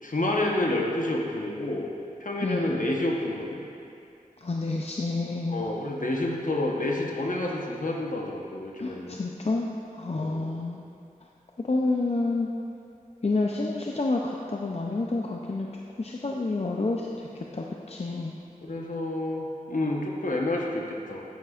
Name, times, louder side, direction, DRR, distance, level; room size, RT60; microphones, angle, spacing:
voice 1, 0.0-1.9 2.2-3.6 5.5-9.2 10.1-10.4 18.6-21.2, left 1 dB, 65° left, -1 dB, 1.0 m, -29 dB
voice 2, 4.4-5.6 8.8-9.7 9.9-10.8 11.6-12.5 13.2-15.7 16.0-18.3, left 3 dB, 45° left, -1 dB, 0.5 m, -29 dB
9.3 x 9.3 x 2.5 m, 2.5 s
wide cardioid pair, 55°, 15 cm